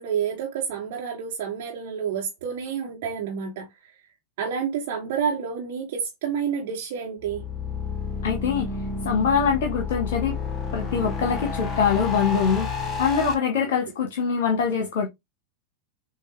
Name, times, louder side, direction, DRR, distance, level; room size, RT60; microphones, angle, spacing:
voice 1, 0.0-3.7 4.4-7.4, right 7 dB, 55° right, 1.3 m, -29 dB
sound 1, 7.2-13.3, left 5 dB, 20° left, 1.4 m, -30 dB
voice 2, 8.2-8.7 9.0-10.3 10.7-12.7 13.0-15.1, left 6 dB, 55° left, 1.0 m, -23 dB
6.7 x 2.5 x 3.2 m
figure-of-eight pair, 90°, 0 cm